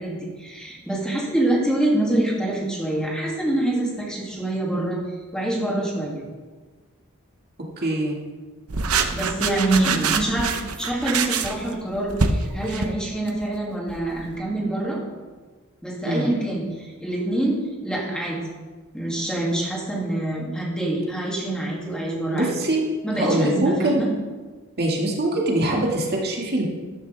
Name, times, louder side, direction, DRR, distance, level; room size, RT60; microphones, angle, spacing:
voice 1, 0.0-5.0 5.3-6.3 9.1-15.0 15.8-17.6 17.8-18.4 18.9-22.5 23.0-24.1, right 1 dB, 5° left, -4 dB, 2.6 m, -25 dB
voice 2, 7.8-8.2 16.0-16.3 22.3-22.8 23.1-24.0 24.8-26.7, right 1 dB, 50° right, -2 dB, 2.2 m, -23 dB
sound 1, 8.7-13.4 13.9-14.4, right 5 dB, 85° right, 1.0 m, -25 dB
13.0 x 12.0 x 3.5 m, 1.3 s
head